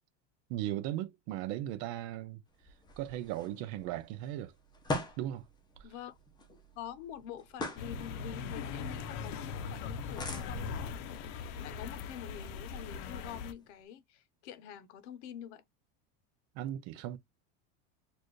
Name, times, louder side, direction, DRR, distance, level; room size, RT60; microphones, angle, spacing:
voice 1, 0.5-2.4 3.0-4.5 5.2-5.5 5.8-5.9 16.6-17.2, right 13 dB, 50° right, 0.6 m, -37 dB
sound 1, 2.5-13.8, left 2 dB, 10° left, 0.7 m, -45 dB
voice 2, 5.8-6.1 6.7-11.1 11.6-15.6, left 9 dB, 75° left, 0.9 m, -46 dB
sound 2, 7.8-13.5, left 6 dB, 50° left, 0.7 m, -40 dB
4.4 x 2.5 x 3.1 m
supercardioid pair, 165°, 35 cm